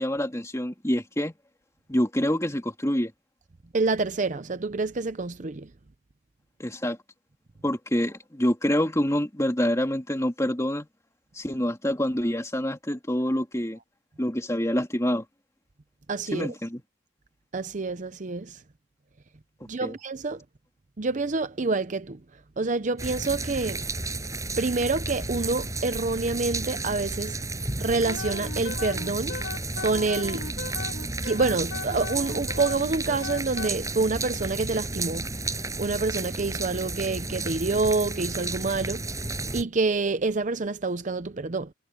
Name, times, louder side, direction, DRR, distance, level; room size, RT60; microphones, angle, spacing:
voice 1, 0.0-1.3 1.9-3.1 6.6-7.0 7.6-10.9 11.3-13.8 14.2-15.2 16.3-16.8 19.8-20.0, equal, 15° left, 2.7 m, -26 dB
voice 2, 3.7-5.7 16.1-16.5 17.5-18.6 19.6-20.4 21.0-22.2 22.6-23.8 24.6-27.4 27.8-29.4 29.8-30.8 31.1-39.1 39.5-41.7, right 3 dB, 45° right, 0.7 m, -27 dB
sound 1, 23.0-39.6, right 2 dB, 20° right, 7.4 m, -32 dB
Wind instrument woodwind instrument, 28.0-33.7, left 4 dB, 80° left, 3.2 m, -37 dB
head